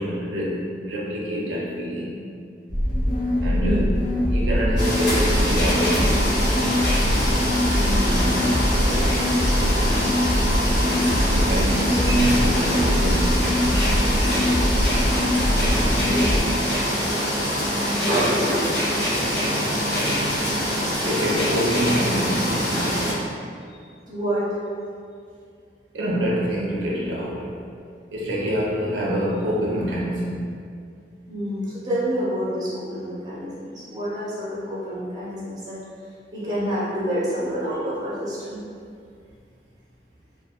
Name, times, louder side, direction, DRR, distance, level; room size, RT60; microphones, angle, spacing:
voice 1, 0.0-2.2 3.4-3.8 4.3-7.0 7.6-7.9 11.1-13.5 17.9-18.1 21.0-23.2 25.9-27.5 28.1-30.5, equal, 90° right, -5 dB, 0.5 m, -26 dB
sound 1, 2.7-16.4, equal, 45° left, 0.4 m, -22 dB
voice 2, 3.4-3.9 7.7-8.4 15.8-16.3 18.1-18.7 18.9-19.1 24.1-24.5 31.3-35.8 36.3-38.6, equal, 20° right, -8 dB, 0.5 m, -28 dB
sound 2, 4.8-23.1, equal, 90° left, 0.9 m, -24 dB
2.2 x 2.2 x 2.8 m, 2.3 s
head